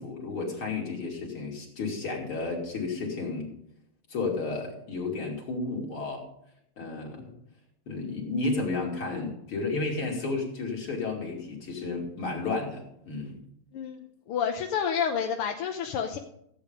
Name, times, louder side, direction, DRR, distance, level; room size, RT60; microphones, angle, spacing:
voice 1, 0.0-3.5 4.1-6.2 6.8-7.3 7.9-13.4, left 3 dB, 70° left, -1 dB, 3.8 m, -32 dB
voice 2, 13.7-16.2, left 7 dB, 90° left, 4 dB, 1.9 m, -29 dB
15.0 x 8.6 x 5.2 m, 0.73 s
omnidirectional pair, 2.4 m